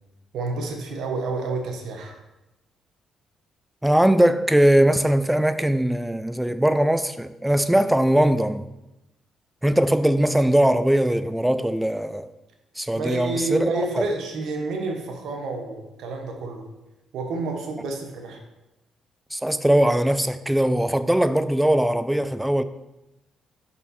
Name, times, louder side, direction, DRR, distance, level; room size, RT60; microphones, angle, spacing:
voice 1, 0.3-2.2 13.0-16.6 17.1-18.4, right 3 dB, 75° right, 1.0 m, -29 dB
voice 2, 3.8-8.6 9.6-12.3 12.8-13.7 14.0-14.1 19.3-22.6, right 1 dB, 5° right, 0.3 m, -20 dB
5.5 x 4.2 x 4.2 m
cardioid pair, 90°, 0 cm